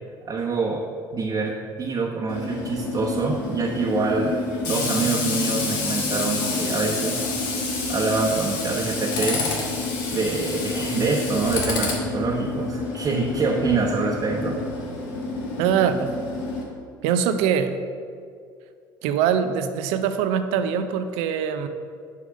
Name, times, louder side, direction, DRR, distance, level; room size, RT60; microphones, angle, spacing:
voice 1, 0.2-0.9 1.1-7.3 7.9-9.5 10.1-14.6, right 4 dB, 40° right, -2 dB, 1.1 m, -25 dB
Tools, 2.3-16.6, left 3 dB, 80° left, 1.4 m, -28 dB
voice 2, 15.6-16.2 17.0-17.8 19.0-21.7, right 8 dB, 70° right, 9 dB, 0.6 m, -23 dB
6.8 x 4.9 x 6.3 m, 2.2 s
hypercardioid pair, 70°, 11 cm